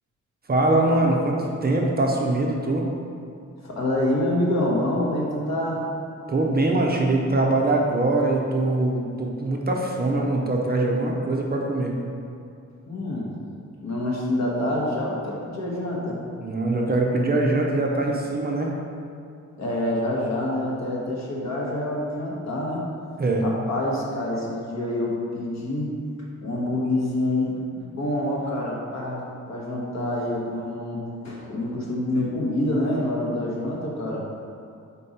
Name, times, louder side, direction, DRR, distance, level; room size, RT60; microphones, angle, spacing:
voice 1, 0.5-2.9 6.3-11.9 16.4-18.7 23.2-23.4, right 2 dB, 30° right, 0 dB, 0.5 m, -22 dB
voice 2, 3.6-5.8 12.9-13.3 13.8-16.2 19.6-22.8 23.4-25.9 26.4-29.2 29.5-31.0 31.2-34.2, left 1 dB, 60° left, -4 dB, 1.3 m, -26 dB
5.2 x 4.4 x 4.2 m, 2.5 s
wide cardioid pair, 150°, 31 cm